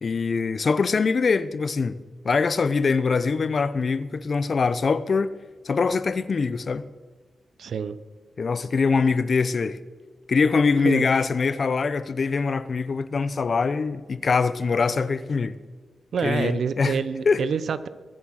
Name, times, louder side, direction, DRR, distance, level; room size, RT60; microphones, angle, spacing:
voice 1, 0.0-2.0 2.2-5.3 5.6-6.8 8.4-9.8 10.3-15.6 16.2-17.0 17.2-17.4, left 4 dB, 50° left, 0.7 m, -23 dB
voice 2, 7.6-8.0 10.8-11.1 16.1-17.9, right 6 dB, 75° right, 0.7 m, -27 dB
21.5 x 7.3 x 6.4 m
cardioid pair, 80°, 0 cm